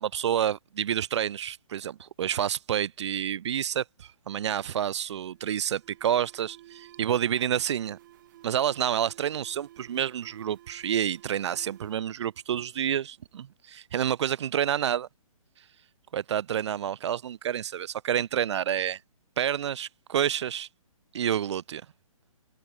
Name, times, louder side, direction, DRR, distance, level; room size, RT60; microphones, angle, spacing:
voice 1, 0.0-8.0 8.4-15.1 16.1-19.0 19.4-20.7 21.1-21.8, right 9 dB, 50° right, 0.6 m, -29 dB
Alarm, 4.9-13.1, right 15 dB, 35° right, 1.3 m, -54 dB
hypercardioid pair, 155°, 18 cm